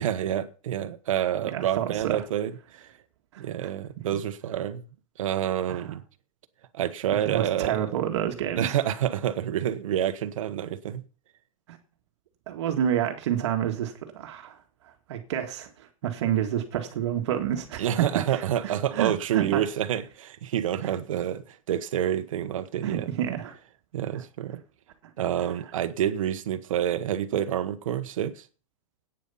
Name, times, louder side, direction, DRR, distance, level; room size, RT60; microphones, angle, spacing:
voice 1, 0.0-2.9 3.4-4.9 5.2-6.0 6.7-7.8 8.6-11.0 17.8-23.1 23.9-24.6 25.2-28.5, right 10 dB, 75° right, 1.3 m, -28 dB
voice 2, 1.5-2.2 3.3-3.7 5.7-5.9 7.3-8.7 11.7-11.8 12.5-14.6 14.8-17.9 18.3-19.7 20.8-20.9 22.8-23.6, right 10 dB, 55° right, 1.9 m, -29 dB
10.5 x 9.2 x 5.6 m
supercardioid pair, 175°, 17 cm